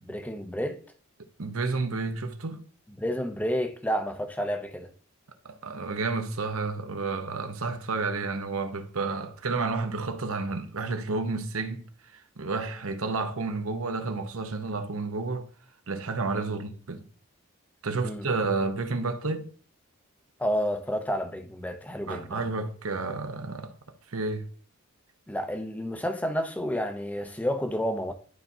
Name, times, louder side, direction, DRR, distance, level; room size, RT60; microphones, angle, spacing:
voice 1, 0.1-0.8 3.0-4.9 16.4-16.6 18.0-18.3 20.4-22.4 25.3-28.1, equal, 5° left, 0.6 m, -30 dB
voice 2, 1.4-2.6 5.4-11.8 12.1-15.5 15.9-17.0 17.8-19.5 22.1-23.7 24.1-24.5, right 3 dB, 70° right, 0.8 m, -31 dB
11.5 x 4.2 x 2.7 m
head